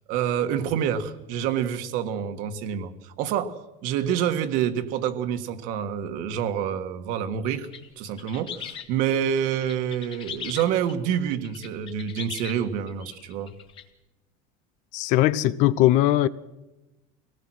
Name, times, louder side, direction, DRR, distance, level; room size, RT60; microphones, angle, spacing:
voice 1, 0.1-3.5 3.8-7.7 8.0-13.5, right 9 dB, 60° right, 1.7 m, -27 dB
sound 1, 7.4-13.8, left 7 dB, 30° left, 1.7 m, -40 dB
voice 2, 14.9-16.3, left 15 dB, 50° left, 0.7 m, -20 dB
24.0 x 18.5 x 6.3 m
cardioid pair, 175°, 16 cm